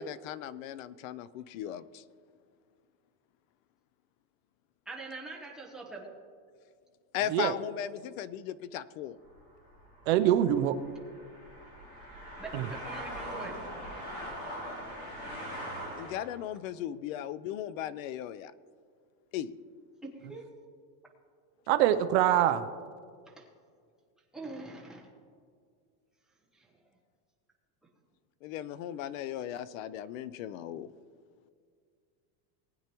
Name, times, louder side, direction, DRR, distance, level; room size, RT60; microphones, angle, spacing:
voice 1, 0.0-2.0 7.1-9.2 16.0-18.5 19.3-19.5 28.4-30.9, left 11 dB, 60° left, 17 dB, 0.5 m, -37 dB
voice 2, 4.9-6.1 12.4-13.6 20.0-20.5 23.3-23.5 24.3-25.1 26.5-26.7, right 3 dB, ahead, -3 dB, 0.9 m, -43 dB
sound 1, 9.3-16.4, equal, 30° left, 2.7 m, -42 dB
voice 3, 10.1-10.8 12.5-12.6 21.7-22.7, right 11 dB, 50° right, 10 dB, 0.5 m, -24 dB
19.5 x 9.0 x 3.0 m, 2.1 s
supercardioid pair, 180°, 45 cm